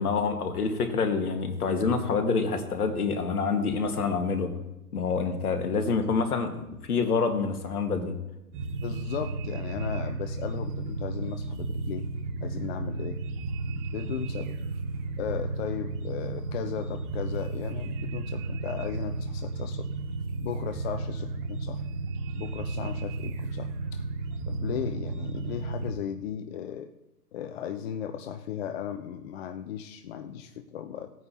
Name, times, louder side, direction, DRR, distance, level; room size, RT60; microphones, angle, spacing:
voice 1, 0.0-4.5 4.9-8.2, left 4 dB, 70° left, 6 dB, 1.8 m, -27 dB
sound 1, 8.5-25.9, right 3 dB, 35° right, 1.0 m, -33 dB
voice 2, 8.8-12.1 12.4-13.2 13.9-14.6 15.2-19.9 20.4-21.8 22.3-24.0 24.5-26.9 27.3-31.1, left 9 dB, 40° left, 9 dB, 0.6 m, -36 dB
17.5 x 9.3 x 2.9 m, 0.90 s
figure-of-eight pair, 120°, 46 cm